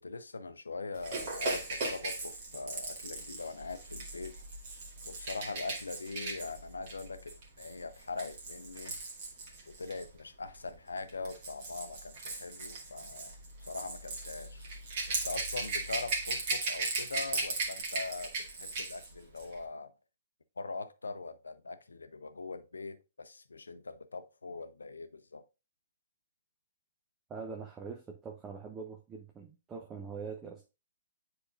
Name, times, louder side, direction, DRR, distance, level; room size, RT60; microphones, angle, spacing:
voice 1, 0.0-4.4 5.1-9.0 9.7-13.3 13.6-14.6 15.1-19.9 20.6-25.4, left 3 dB, 75° left, 0.6 m, -42 dB
Rattle / Rattle (instrument), 1.0-10.0 11.0-19.1 19.4-19.5, right 3 dB, 50° right, 2.1 m, -38 dB
voice 2, 27.3-30.6, right 5 dB, 20° right, 0.9 m, -43 dB
9.8 x 4.2 x 2.4 m
figure-of-eight pair, 120°, 0 cm